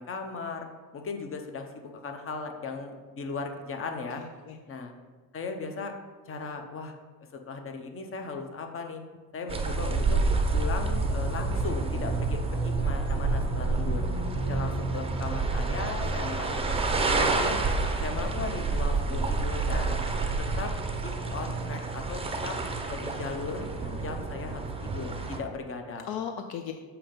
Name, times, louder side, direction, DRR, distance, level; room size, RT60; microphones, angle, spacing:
voice 1, 0.0-4.2 4.7-4.9 5.3-5.9 6.3-6.9 7.5-9.0 9.3-10.2 10.5-14.1 14.5-17.6 18.0-20.0 20.4-20.7 21.0-22.6 22.9-23.7 24.0-26.1, left 4 dB, 35° left, 5 dB, 0.8 m, -37 dB
voice 2, 4.2-4.6 14.0-14.9 23.8-24.0 26.0-26.7, left 8 dB, 65° left, 6 dB, 0.5 m, -38 dB
sound 1, 9.5-25.4, right 3 dB, 15° right, 0.6 m, -28 dB
7.0 x 2.9 x 5.2 m, 1.4 s
cardioid pair, 100°, 40 cm